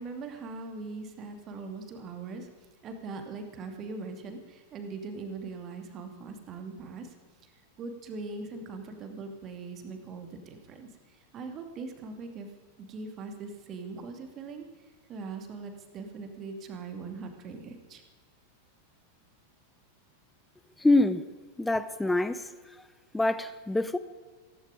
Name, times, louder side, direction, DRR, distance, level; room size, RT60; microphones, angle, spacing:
voice 1, 0.0-2.5 2.8-7.1 7.4-7.5 7.8-12.5 12.8-14.7 15.1-18.0, right 4 dB, 30° right, 5 dB, 2.5 m, -41 dB
voice 2, 20.8-21.2 21.6-22.5 23.1-24.0, left 2 dB, 5° left, 14 dB, 0.9 m, -25 dB
16.5 x 15.5 x 5.1 m, 1.4 s
figure-of-eight pair, 90°, 0 cm